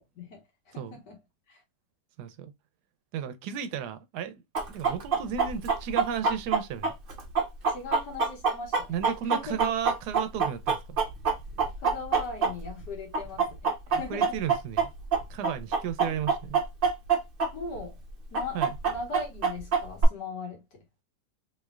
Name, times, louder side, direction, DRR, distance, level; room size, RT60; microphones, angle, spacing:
voice 1, 0.2-1.2 1.5-1.6 7.7-9.0 9.2-9.6 11.8-14.4 16.0-16.3 17.5-18.0 18.3-18.6 18.9-20.8, left 4 dB, 80° left, 1.9 m, -39 dB
voice 2, 2.2-2.5 3.1-6.9 8.9-11.0 13.9-14.9 15.3-16.6 18.5-18.7, right 8 dB, 80° right, 1.1 m, -34 dB
Chicken rooster, 4.5-12.8 13.1-17.5 17.7-17.8 18.3-20.0, right 5 dB, 50° right, 0.7 m, -25 dB
3.4 x 3.2 x 2.3 m
omnidirectional pair, 1.8 m